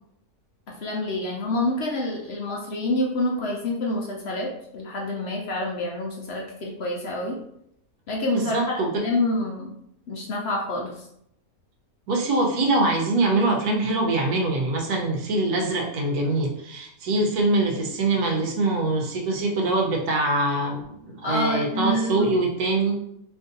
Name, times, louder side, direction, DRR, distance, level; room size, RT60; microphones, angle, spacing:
voice 1, 0.7-7.4 8.1-9.7 10.1-11.0 21.2-22.3, left 1 dB, 60° left, -1 dB, 0.7 m, -27 dB
voice 2, 8.3-9.0 12.1-23.0, right 2 dB, 85° right, 1 dB, 1.3 m, -23 dB
3.1 x 2.6 x 3.8 m, 0.75 s
omnidirectional pair, 1.5 m